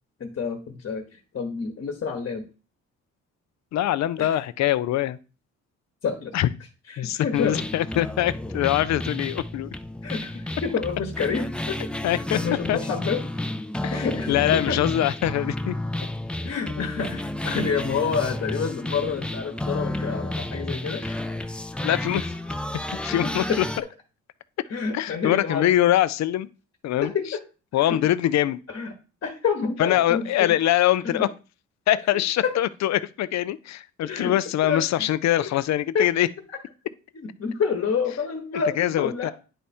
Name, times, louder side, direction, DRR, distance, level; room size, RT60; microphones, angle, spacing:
voice 1, 0.2-2.5 4.2-4.4 6.0-6.4 6.9-7.6 10.0-11.8 12.1-13.2 13.9-14.8 16.4-21.0 22.9-23.6 24.7-25.7 27.0-27.4 27.8-28.0 28.7-28.9 29.2-30.5 31.0-31.2 32.1-32.5 34.0-34.3 34.6-35.1 35.4-35.5 35.9-36.1 37.1-39.3, left 5 dB, 45° left, 1.2 m, -28 dB
voice 2, 3.7-5.2 6.3-6.5 7.0-9.7 12.0-12.4 12.7-12.8 13.8-15.8 16.6-16.9 21.8-22.3 23.0-23.6 24.9-26.5 26.8-27.1 27.7-28.6 29.8-31.3 31.9-36.3 38.8-39.3, left 13 dB, 65° left, 0.5 m, -23 dB
sound 1, 7.3-23.8, left 1 dB, 5° left, 0.5 m, -31 dB
10.0 x 3.5 x 4.3 m
cardioid pair, 90°, 30 cm